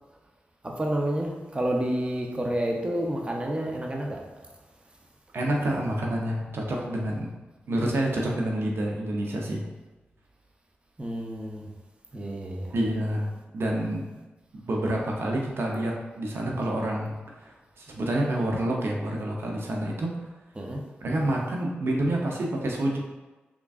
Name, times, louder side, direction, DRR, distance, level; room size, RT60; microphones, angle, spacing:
voice 1, 0.6-4.3 11.0-11.7 12.1-12.7 20.6-20.8, right 1 dB, 25° right, 0.7 m, -29 dB
voice 2, 5.3-7.3 7.7-9.6 12.7-14.0 14.5-20.1 21.0-23.0, right 1 dB, 70° right, 0.7 m, -28 dB
3.7 x 3.4 x 2.4 m
cardioid pair, 45°, 4 cm